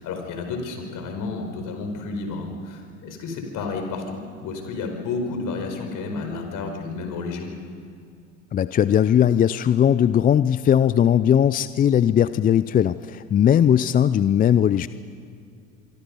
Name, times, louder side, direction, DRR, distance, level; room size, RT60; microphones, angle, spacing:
voice 1, 0.0-7.5, left 3 dB, 50° left, 4 dB, 5.1 m, -31 dB
voice 2, 8.5-14.9, left 9 dB, 20° left, 15 dB, 0.4 m, -19 dB
25.5 x 24.0 x 5.4 m, 2.3 s
hypercardioid pair, 85°, 40 cm